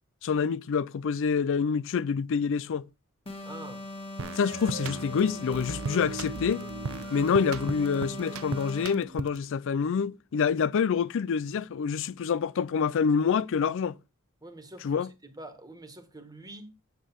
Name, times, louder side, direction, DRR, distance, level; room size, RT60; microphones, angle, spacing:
voice 1, 0.2-2.9 4.4-6.7 7.1-13.9 14.8-15.1, left 6 dB, 60° left, 0.4 m, -27 dB
sound 1, 3.3-9.2, left 1 dB, 25° left, 1.7 m, -40 dB
voice 2, 3.4-3.9 14.4-16.7, right 1 dB, 20° right, 1.7 m, -46 dB
sound 2, 4.2-9.5, right 4 dB, 70° right, 0.6 m, -38 dB
8.3 x 8.2 x 4.5 m
head